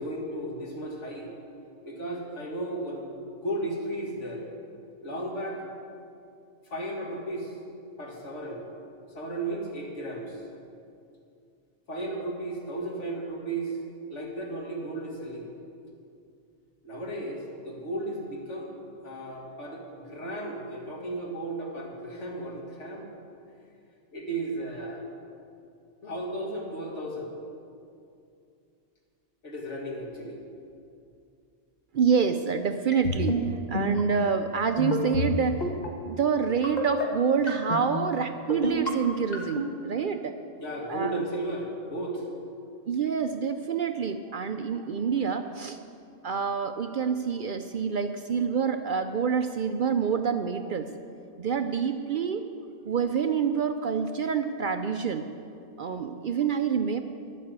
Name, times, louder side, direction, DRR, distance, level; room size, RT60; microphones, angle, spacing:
voice 1, 0.0-1.3 1.8-4.4 5.0-5.6 6.7-7.5 8.0-8.6 9.1-10.4 11.9-13.8 14.0-15.5 16.8-18.7 19.0-23.1 24.1-25.1 26.0-27.3 29.4-30.4 40.6-42.2, right 1 dB, 80° left, -1 dB, 2.4 m, -34 dB
voice 2, 31.9-33.4 33.7-35.7 36.0-40.4 40.9-41.2 42.9-45.8 46.2-50.9 51.4-52.4 52.8-55.3 55.8-57.0, right 6 dB, 55° right, 8 dB, 0.6 m, -27 dB
sound 1, 32.9-33.4 33.7-34.0 34.8-35.3 35.6-35.9 36.6-37.1 37.5-37.8 38.5-38.9 39.3-39.7, left 1 dB, 35° left, 1.6 m, -28 dB
11.5 x 8.5 x 8.1 m, 2.5 s
omnidirectional pair, 1.2 m